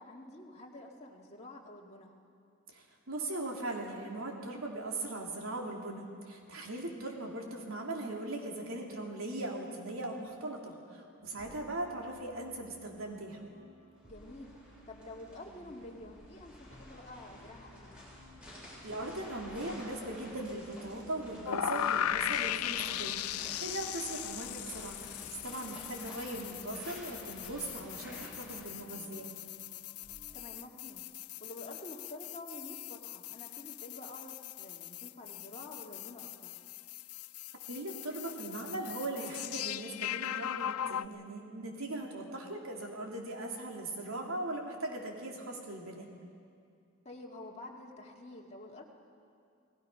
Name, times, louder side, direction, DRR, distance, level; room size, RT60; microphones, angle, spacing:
voice 1, 0.0-2.2 11.4-11.6 14.0-14.5 14.9-18.0 23.8-24.0 30.3-31.1 31.4-36.5 47.0-48.8, left 2 dB, 30° left, -1 dB, 2.1 m, -49 dB
voice 2, 2.7-13.4 18.8-25.0 25.3-29.3 37.7-46.1, right 2 dB, 70° right, 0 dB, 3.1 m, -39 dB
sound 1, 11.2-30.5, equal, 30° right, 3.5 m, -59 dB
sound 2, 14.0-28.6, equal, 5° right, 7.5 m, -51 dB
sound 3, 21.5-41.1, left 11 dB, 85° left, 0.4 m, -39 dB
30.0 x 18.5 x 5.7 m, 2.4 s
head